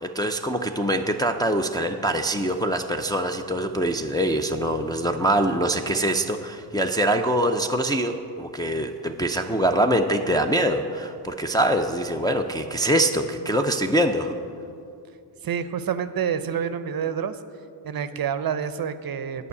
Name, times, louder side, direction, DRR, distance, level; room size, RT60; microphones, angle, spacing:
voice 1, 0.0-14.3, right 1 dB, 10° left, 3 dB, 0.4 m, -24 dB
voice 2, 15.4-17.4 17.8-19.5, right 7 dB, 50° right, 12 dB, 0.6 m, -28 dB
9.7 x 5.5 x 8.3 m, 2.5 s
cardioid pair, 85°, 48 cm